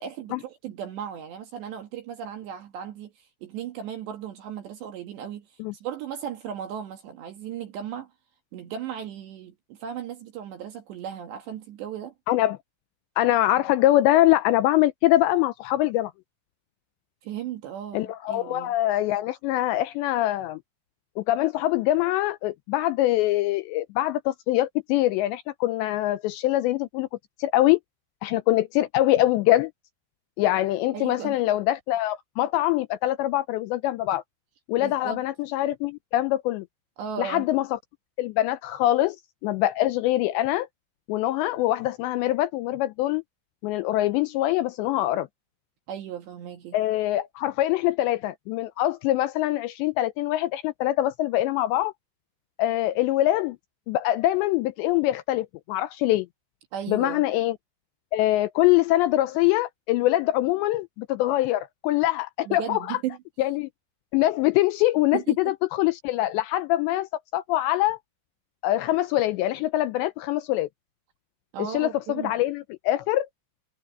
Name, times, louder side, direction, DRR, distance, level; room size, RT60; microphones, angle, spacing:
voice 1, 0.0-5.5 5.8-8.1 8.5-12.1 17.2-18.7 30.9-31.4 34.8-35.2 37.0-37.5 45.9-46.8 56.7-57.2 62.5-63.2 65.1-65.4 71.5-72.3, right 9 dB, 65° right, 3.8 m, -36 dB
voice 2, 12.3-12.6 13.2-16.1 17.9-20.6 21.2-27.1 27.4-27.8 28.2-29.7 30.4-34.2 34.7-36.7 37.2-37.8 38.2-39.2 39.4-40.7 41.1-43.2 43.6-45.3 46.7-51.9 52.6-53.6 53.9-56.3 56.9-57.6 58.1-63.0 63.4-63.7 64.1-68.0 68.6-70.7 71.6-73.3, left 15 dB, 80° left, 2.6 m, -24 dB
omnidirectional pair, 5.6 m